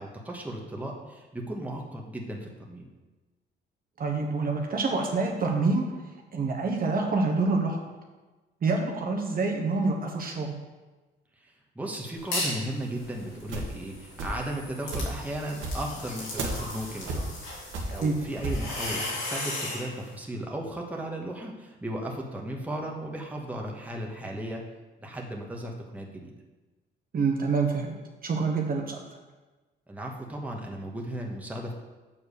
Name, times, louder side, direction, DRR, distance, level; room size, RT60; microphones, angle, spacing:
voice 1, 0.0-2.9 11.3-17.6 17.9-24.6 25.0-26.3 29.9-31.7, right 1 dB, 5° right, -1 dB, 1.5 m, -36 dB
voice 2, 4.0-5.8 6.3-7.8 8.6-10.5 18.0-18.1 27.1-27.9 28.2-29.0, right 3 dB, 45° right, 1 dB, 1.2 m, -26 dB
sound 1, 12.3-12.7 13.1-19.9, left 2 dB, 90° left, 2.9 m, -36 dB
sound 2, 13.0-14.6 14.9-18.7, right 2 dB, 80° right, 1.7 m, -33 dB
7.1 x 4.6 x 6.9 m, 1.2 s
cardioid pair, 90°, 20 cm